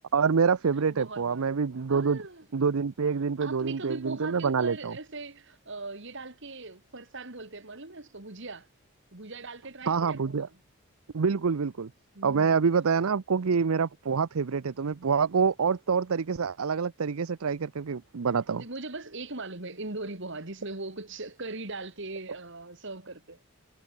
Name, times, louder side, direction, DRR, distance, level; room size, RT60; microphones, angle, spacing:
voice 1, 0.1-2.2 2.5-5.0 9.9-10.5 11.1-11.9 12.2-18.6, right 5 dB, 80° right, 0.6 m, -26 dB
voice 2, 0.9-1.6 1.9-2.5 3.4-8.7 9.1-10.6 12.1-13.1 18.5-23.4, right 3 dB, 60° right, 2.6 m, -40 dB
head